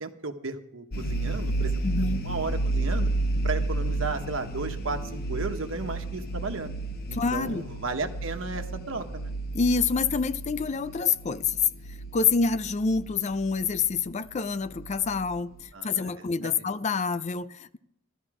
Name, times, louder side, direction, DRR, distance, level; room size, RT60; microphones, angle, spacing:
voice 1, 0.0-1.8 2.1-3.1 3.4-6.7 7.1-9.3 15.7-16.6, right 3 dB, 80° right, 1.2 m, -34 dB
sound 1, 0.9-15.6, right 2 dB, 50° left, 1.0 m, -32 dB
voice 2, 1.8-2.3 7.1-7.6 9.5-11.6 12.1-15.5 15.8-17.8, left 5 dB, 35° left, 0.4 m, -27 dB
14.5 x 13.0 x 4.9 m
head